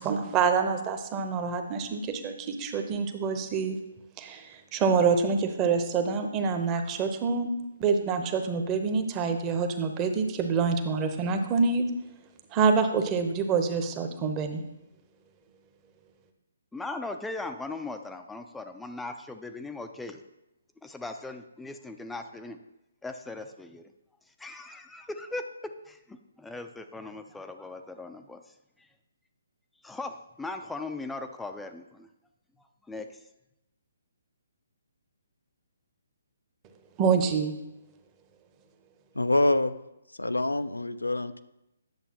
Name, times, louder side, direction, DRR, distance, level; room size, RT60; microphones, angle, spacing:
voice 1, 0.0-3.8 4.2-7.5 7.8-11.9 12.5-14.6 37.0-37.5, right 5 dB, 25° right, 6 dB, 0.8 m, -26 dB
voice 2, 16.7-20.2 20.8-22.6 23.0-23.8 24.4-25.4 25.9-28.4 28.8-28.9 29.8-32.1 32.9-33.2, left 2 dB, 5° left, 7 dB, 0.4 m, -39 dB
voice 3, 39.1-39.7 40.2-41.4, left 2 dB, 90° left, 12 dB, 0.4 m, -25 dB
10.5 x 6.8 x 3.0 m, 0.88 s
figure-of-eight pair, 140°, 0 cm